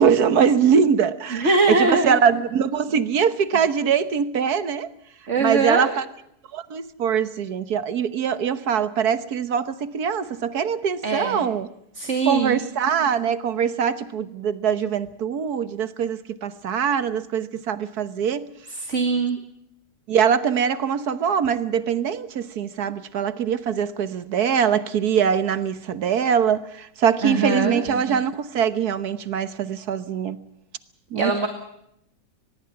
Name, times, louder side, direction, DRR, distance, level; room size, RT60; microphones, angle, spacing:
voice 1, 0.0-4.9 5.4-6.0 6.5-11.7 12.2-18.5 20.1-30.4 31.1-31.5, right 7 dB, 65° right, 1.6 m, -22 dB
voice 2, 1.3-2.2 5.3-6.0 11.0-11.4 11.9-12.6 18.7-19.4 27.2-27.8 31.2-31.5, right 3 dB, 45° right, 2.3 m, -22 dB
24.0 x 21.0 x 5.9 m
omnidirectional pair, 1.8 m